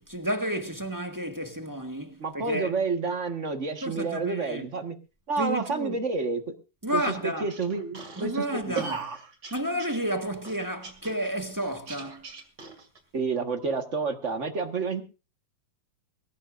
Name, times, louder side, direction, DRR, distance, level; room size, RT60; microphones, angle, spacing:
voice 1, 0.0-2.7 3.8-4.7 5.4-6.0 6.8-7.5 8.2-9.0 9.5-12.3, equal, 10° right, 1.4 m, -31 dB
voice 2, 2.2-4.9 5.3-6.5 6.9-9.2 13.1-15.0, right 4 dB, 40° right, 1.6 m, -30 dB
sound 1, 7.0-13.0, right 5 dB, 65° right, 3.0 m, -40 dB
20.5 x 17.0 x 2.5 m
omnidirectional pair, 2.0 m